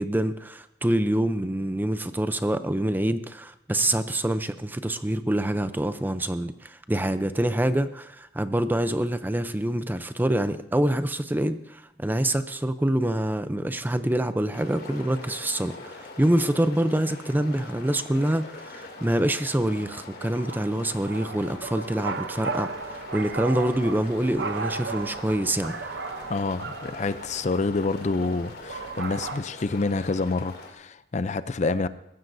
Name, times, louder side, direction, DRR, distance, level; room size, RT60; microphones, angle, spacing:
voice 1, 0.0-25.7, right 1 dB, 10° right, 11 dB, 0.6 m, -26 dB
sound 1, 14.5-30.7, left 2 dB, 65° left, 2.8 m, -43 dB
sound 2, 20.5-29.4, right 4 dB, 80° right, 0.8 m, -36 dB
voice 2, 26.3-31.9, left 3 dB, 40° left, 13 dB, 0.5 m, -27 dB
20.5 x 15.5 x 2.7 m, 0.83 s
head